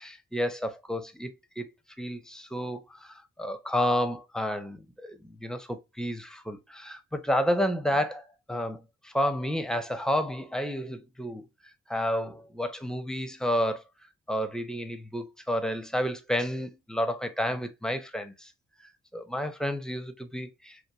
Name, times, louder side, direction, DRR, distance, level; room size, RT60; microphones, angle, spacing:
voice 1, 0.0-1.7 2.0-11.5 11.9-13.8 14.3-18.5 18.8-20.8, equal, ahead, 0.5 m, -31 dB
2.9 x 2.1 x 2.3 m
supercardioid pair, 45°, 31 cm